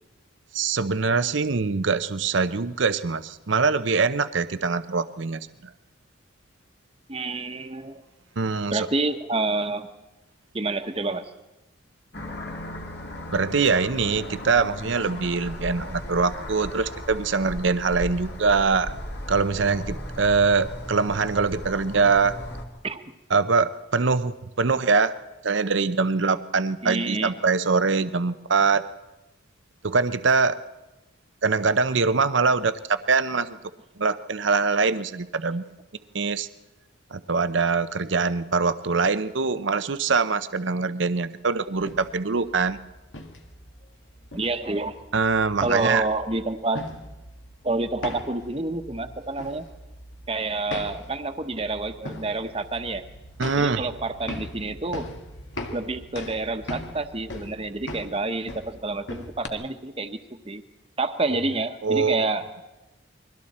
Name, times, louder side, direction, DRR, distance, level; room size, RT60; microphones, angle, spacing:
voice 1, 0.5-5.5 8.4-8.9 13.3-18.9 19.3-22.3 23.3-25.1 25.4-28.8 29.8-30.6 31.4-33.5 34.0-35.6 36.1-36.5 37.1-42.8 45.1-46.0 53.4-53.9 61.8-62.3, right 4 dB, 70° right, 12 dB, 0.7 m, -23 dB
voice 2, 7.1-8.0 8.7-9.9 10.5-11.3 22.8-23.0 26.8-27.3 44.3-45.0 45.6-46.8 47.6-49.6 50.3-53.0 53.6-55.1 55.7-60.2 60.5-60.6 61.0-62.5, right 2 dB, 30° right, 8 dB, 1.2 m, -28 dB
sound 1, 12.1-22.7, left 1 dB, 55° left, 2.5 m, -36 dB
sound 2, 41.7-59.5, left 1 dB, 70° left, 2.0 m, -40 dB
29.0 x 22.5 x 4.3 m, 1.0 s
head